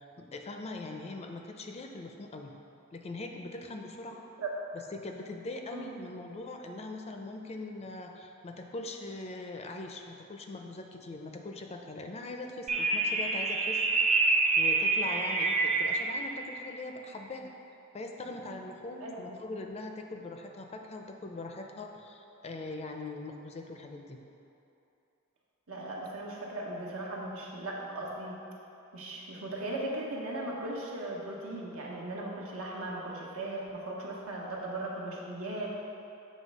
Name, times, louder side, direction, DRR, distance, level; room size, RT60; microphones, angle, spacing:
voice 1, 0.0-2.5 2.9-4.2 4.7-13.9 14.6-17.5 17.9-24.2, left 2 dB, 30° left, 3 dB, 0.4 m, -41 dB
sound 1, 12.7-16.2, right 3 dB, 35° right, 0.5 m, -27 dB
voice 2, 19.0-19.3 25.7-28.4 28.9-35.8, right 2 dB, 85° right, -3 dB, 1.1 m, -38 dB
7.5 x 3.2 x 5.3 m, 2.8 s
head